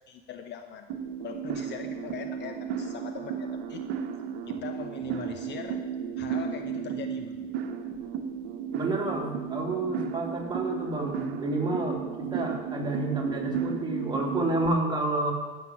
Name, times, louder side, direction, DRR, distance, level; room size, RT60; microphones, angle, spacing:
voice 1, 0.1-0.9 1.2-3.8 4.5-5.8 6.2-7.3, left 8 dB, 40° left, 6 dB, 0.9 m, -41 dB
sound 1, 0.9-14.7, right 7 dB, 55° right, 1.2 m, -34 dB
voice 2, 8.7-15.3, right 2 dB, 15° right, 0 dB, 2.3 m, -30 dB
13.5 x 6.0 x 6.0 m, 1.3 s
hypercardioid pair, 80°, 29 cm